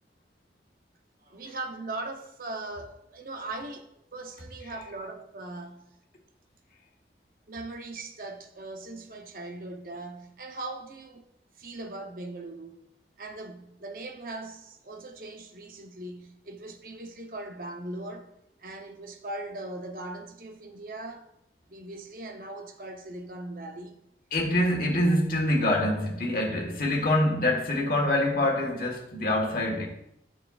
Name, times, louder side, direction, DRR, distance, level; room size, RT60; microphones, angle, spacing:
voice 1, 1.2-5.9 7.5-11.3 11.6-12.8 13.2-18.3 18.6-21.3 21.7-24.0, right 2 dB, 50° right, 0.7 m, -40 dB
voice 2, 24.3-29.9, left 1 dB, 50° left, 1.4 m, -25 dB
10.0 x 5.5 x 2.4 m
head